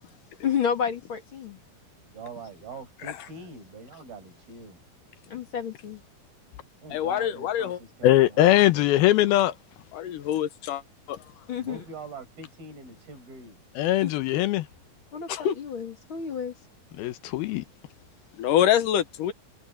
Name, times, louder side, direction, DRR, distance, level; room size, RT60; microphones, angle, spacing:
voice 1, 0.4-1.6 5.3-6.0 11.5-11.8 14.0-14.1 15.1-16.5, left 7 dB, 40° left, 2.3 m, -30 dB
voice 2, 2.1-4.8 6.8-8.4 8.8-9.1 11.6-13.6, right 3 dB, 80° right, 8.5 m, -43 dB
voice 3, 6.9-7.8 9.9-10.8 11.1-11.2 15.3-15.5 18.4-19.3, left 10 dB, 70° left, 2.4 m, -25 dB
voice 4, 8.0-9.5 13.8-14.7 17.0-17.6, left 14 dB, 90° left, 2.9 m, -21 dB
omnidirectional pair, 4.2 m